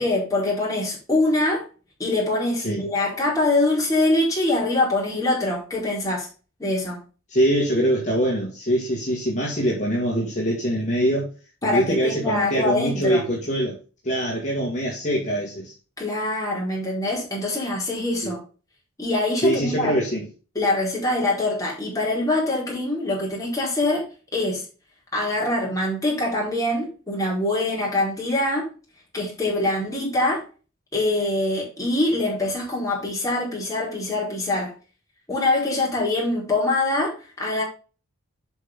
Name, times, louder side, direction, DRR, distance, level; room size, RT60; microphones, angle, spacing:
voice 1, 0.0-1.6 2.0-6.3 6.6-7.0 11.6-13.2 16.0-18.4 19.0-19.9 20.5-24.0 24.3-24.7 25.1-28.7 29.1-30.4 30.9-34.7 35.3-37.6, left 2 dB, 15° left, 4.5 m, -24 dB
voice 2, 7.3-11.3 11.6-13.8 14.0-15.7 18.2-18.3 19.4-20.3, equal, 35° left, 2.0 m, -23 dB
8.3 x 5.6 x 3.7 m
head